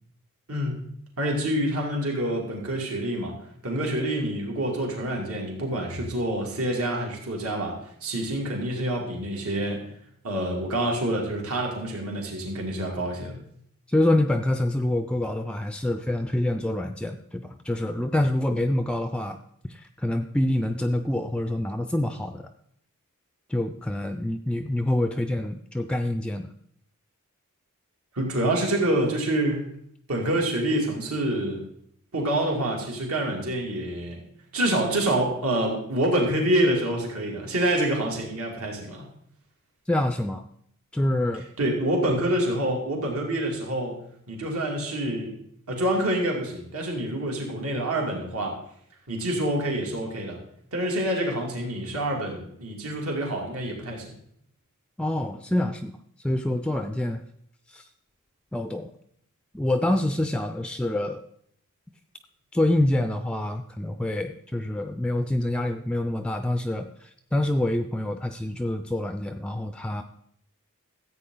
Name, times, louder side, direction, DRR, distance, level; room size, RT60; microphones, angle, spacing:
voice 1, 0.5-0.8 1.2-3.4 3.6-9.8 10.2-13.4 28.1-29.7 30.1-31.6 32.1-34.2 34.5-39.0 41.6-44.0 44.3-45.4 45.7-48.6 49.1-50.4 50.7-54.2, right 1 dB, 70° right, -1 dB, 2.6 m, -27 dB
voice 2, 13.9-19.4 19.7-22.5 23.5-26.5 39.9-40.5 40.9-41.4 55.0-55.9 56.2-57.2 57.7-57.9 58.5-58.9 59.5-61.2 62.5-70.0, left 1 dB, 5° left, 8 dB, 0.4 m, -26 dB
14.0 x 8.4 x 3.8 m, 0.70 s
head